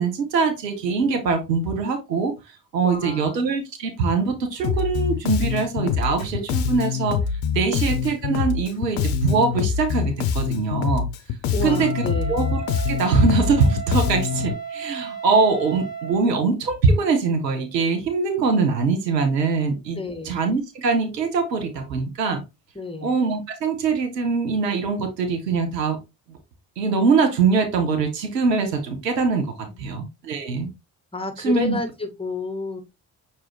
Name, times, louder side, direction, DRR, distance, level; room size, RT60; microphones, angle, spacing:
voice 1, 0.0-2.3 2.7-7.2 7.5-11.0 11.6-12.0 12.3-12.6 12.9-20.0 20.2-22.4 23.0-26.0 26.8-30.7 31.4-31.8, right 4 dB, 85° right, 0.8 m, -22 dB
voice 2, 2.8-3.5 7.7-7.8 11.5-12.4 19.9-20.4 22.7-23.1 29.7-30.0 31.1-32.8, left 2 dB, 10° left, 1.3 m, -30 dB
Bass guitar, 4.6-14.5, left 7 dB, 65° left, 0.7 m, -25 dB
Wind instrument woodwind instrument, 11.7-16.3, right 6 dB, 40° right, 2.2 m, -34 dB
5.9 x 2.9 x 3.0 m
figure-of-eight pair, 40°, 48 cm